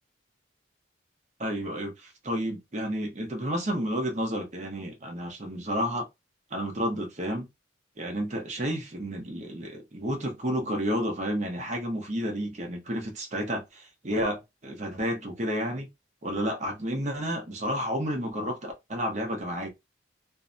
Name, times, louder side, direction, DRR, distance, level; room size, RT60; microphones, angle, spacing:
voice 1, 1.4-6.1 6.5-7.5 8.0-15.9 16.2-19.7, equal, 35° right, 0.7 m, -31 dB
2.6 x 2.1 x 2.5 m
head